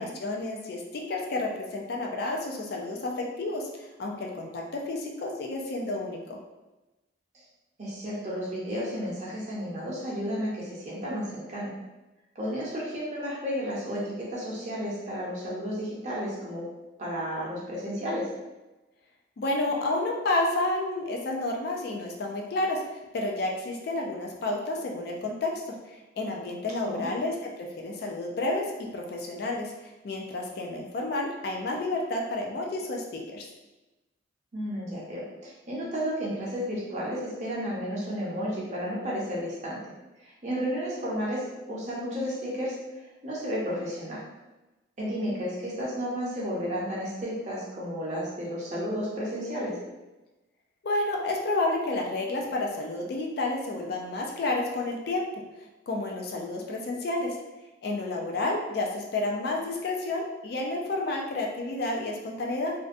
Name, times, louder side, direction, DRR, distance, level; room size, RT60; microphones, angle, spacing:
voice 1, 0.0-6.4 19.4-22.8 23.1-25.6 26.2-28.7 28.9-33.5 50.8-55.2 55.9-57.4 57.8-62.7, left 2 dB, 55° left, 0 dB, 0.3 m, -30 dB
voice 2, 7.8-11.7 12.3-16.6 17.0-18.3 26.8-27.1 34.5-39.9 40.2-44.2 45.0-49.8, equal, 35° right, -6 dB, 0.7 m, -32 dB
2.5 x 2.1 x 2.5 m, 1.1 s
head